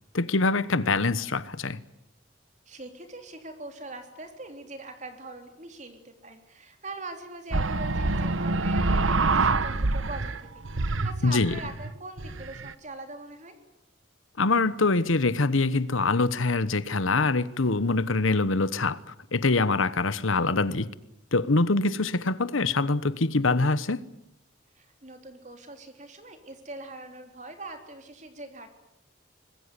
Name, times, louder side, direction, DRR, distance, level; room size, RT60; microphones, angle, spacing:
voice 1, 0.1-1.8 11.2-11.6 14.4-20.9 21.3-24.0, left 3 dB, 85° left, 1.1 m, -24 dB
voice 2, 2.7-13.5 24.8-28.7, right 2 dB, 35° right, 3.7 m, -42 dB
sound 1, 7.5-10.4 10.6-12.7, right 3 dB, 85° right, 1.1 m, -26 dB
25.0 x 20.5 x 9.8 m
head